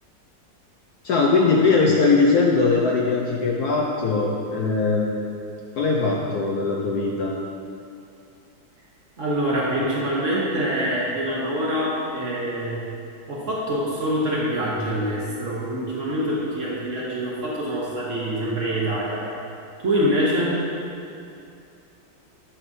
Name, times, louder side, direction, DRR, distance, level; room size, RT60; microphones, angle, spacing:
voice 1, 1.0-5.2 5.8-7.4, left 4 dB, 70° left, -1 dB, 0.9 m, -20 dB
voice 2, 9.2-12.8 13.3-19.2 19.8-20.6, equal, 50° right, -6 dB, 1.1 m, -25 dB
8.5 x 6.0 x 2.7 m, 2.6 s
omnidirectional pair, 2.0 m